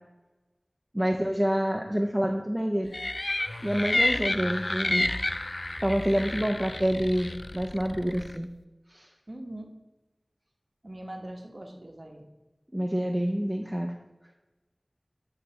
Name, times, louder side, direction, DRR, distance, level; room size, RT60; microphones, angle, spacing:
voice 1, 0.9-2.9 3.6-5.1 5.8-8.5 8.9-9.1 12.7-13.9, equal, 15° right, 1 dB, 0.6 m, -27 dB
sound 1, 2.9-8.4, left 2 dB, 55° left, 0.3 m, -30 dB
voice 2, 9.3-9.7 10.8-12.3, right 1 dB, 45° right, 2 dB, 1.1 m, -41 dB
8.9 x 3.3 x 5.3 m, 1.1 s
wide cardioid pair, 45°, 0 cm